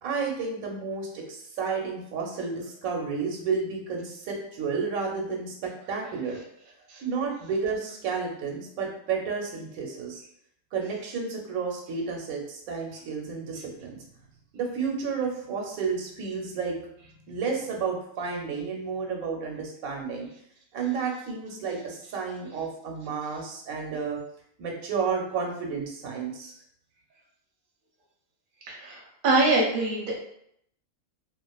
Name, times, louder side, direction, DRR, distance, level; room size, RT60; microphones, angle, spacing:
voice 1, 0.0-6.4 7.0-10.2 10.7-14.0 14.5-16.8 17.2-20.3 20.7-24.2 24.6-26.5, right 5 dB, 85° right, 0 dB, 1.1 m, -31 dB
voice 2, 28.7-30.2, right 2 dB, 50° right, -2 dB, 0.7 m, -24 dB
2.4 x 2.4 x 2.2 m, 0.70 s
omnidirectional pair, 1.4 m